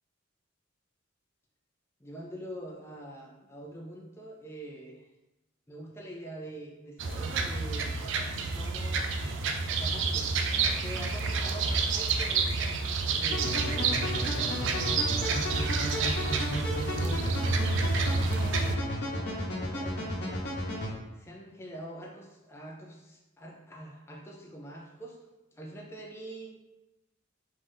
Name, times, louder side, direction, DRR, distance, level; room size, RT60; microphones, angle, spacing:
voice 1, 2.0-5.1 5.7-7.9 8.4-9.5 9.8-10.4 10.7-12.6 13.1-16.2 16.7-20.5 21.1-25.2 25.5-26.5, right 1 dB, 15° left, -1 dB, 0.4 m, -45 dB
sound 1, 7.0-18.8, right 4 dB, 60° right, 0.4 m, -29 dB
sound 2, 13.3-20.9, left 1 dB, 55° left, 0.8 m, -34 dB
3.3 x 2.6 x 3.8 m, 1.0 s
head